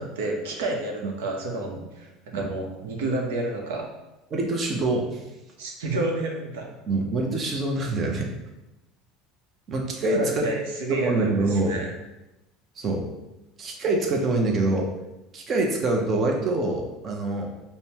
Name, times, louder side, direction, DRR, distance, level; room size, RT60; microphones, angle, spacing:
voice 1, 0.0-3.9 5.6-6.8 10.1-11.9, right 2 dB, 90° right, 1 dB, 0.8 m, -30 dB
voice 2, 4.3-5.2 6.9-8.3 9.7-10.5 10.9-11.8 12.8-13.0 13.6-14.9 15.3-17.5, right 2 dB, 35° right, 1 dB, 0.7 m, -25 dB
5.1 x 2.2 x 2.9 m, 0.97 s
supercardioid pair, 115°, 0 cm